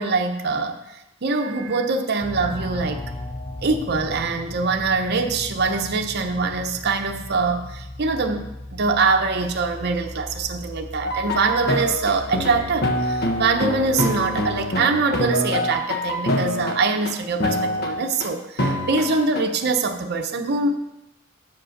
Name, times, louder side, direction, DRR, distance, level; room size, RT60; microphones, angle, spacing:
voice 1, 0.0-3.0 3.6-8.4 8.7-20.8, right 4 dB, 55° right, 4 dB, 0.7 m, -23 dB
sound 1, 2.2-14.7, left 2 dB, 20° left, 0.5 m, -37 dB
sound 2, 11.0-17.1 17.4-18.3 18.6-19.4, left 1 dB, 50° left, 1.1 m, -25 dB
7.3 x 5.2 x 6.5 m, 0.90 s
head